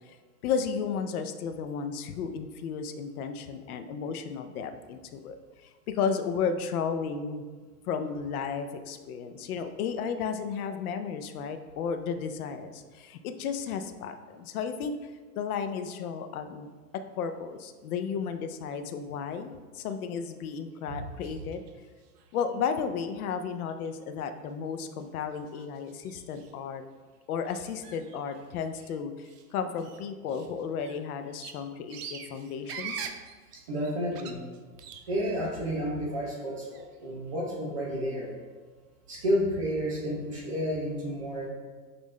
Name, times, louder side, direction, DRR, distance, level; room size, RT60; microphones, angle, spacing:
voice 1, 0.4-5.4 5.9-7.4 7.9-14.9 15.4-16.7 17.2-21.6 22.3-26.8 27.3-33.1, left 6 dB, 65° left, 8 dB, 0.6 m, -33 dB
sound 1, 21.2-21.7 22.0-22.6 23.2-23.3 23.7-23.9 24.4-24.5 25.0-25.1 25.3-26.6 27.5-28.9 29.2-29.5 29.8-35.7 36.0-36.9, right 7 dB, 80° right, 0.6 m, -45 dB
voice 2, 33.7-34.4 35.1-38.3 39.1-41.5, equal, 25° right, -3 dB, 0.4 m, -31 dB
5.5 x 2.5 x 3.1 m, 1.4 s
hypercardioid pair, 150°, 47 cm